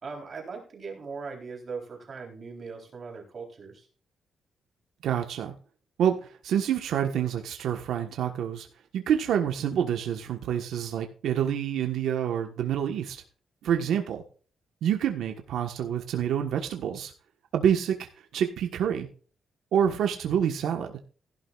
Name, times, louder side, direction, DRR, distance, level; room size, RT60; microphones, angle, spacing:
voice 1, 0.0-3.9, right 4 dB, 35° right, 1 dB, 3.8 m, -39 dB
voice 2, 5.0-5.5 6.0-8.7 8.9-13.2 13.6-14.2 14.8-17.1 17.5-19.1 19.7-21.0, right 9 dB, 90° right, 4 dB, 1.4 m, -27 dB
16.0 x 11.5 x 2.5 m, 0.41 s
wide cardioid pair, 175°, 0 cm